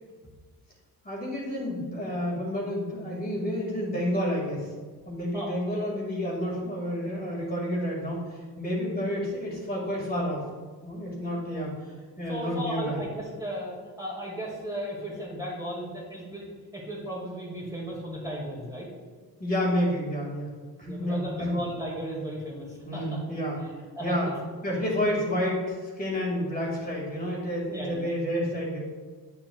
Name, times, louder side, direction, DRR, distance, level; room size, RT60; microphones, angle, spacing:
voice 1, 1.0-4.7 5.0-10.4 10.8-11.7 12.2-13.0 19.4-20.5 20.8-21.6 22.8-23.6 24.0-24.3 24.6-28.8, equal, 25° left, -4 dB, 2.1 m, -30 dB
voice 2, 5.3-5.8 12.2-16.4 16.7-18.9 20.9-23.2 23.6-24.3 27.7-28.1, equal, 10° right, -5 dB, 2.1 m, -35 dB
8.9 x 7.1 x 2.4 m, 1.4 s
cardioid pair, 105°, 38 cm